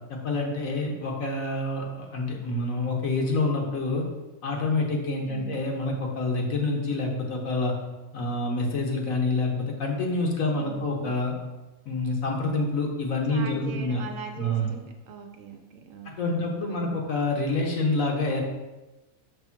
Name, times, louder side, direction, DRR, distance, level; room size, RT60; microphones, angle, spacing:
voice 1, 0.1-4.1 4.4-7.7 8.1-11.3 11.8-14.0 14.4-14.7 16.2-18.4, left 2 dB, 65° left, 0 dB, 1.4 m, -27 dB
voice 2, 5.2-5.6 10.4-11.2 13.3-17.0, right 6 dB, 65° right, 4 dB, 0.9 m, -41 dB
5.9 x 3.3 x 5.9 m, 1.1 s
omnidirectional pair, 1.6 m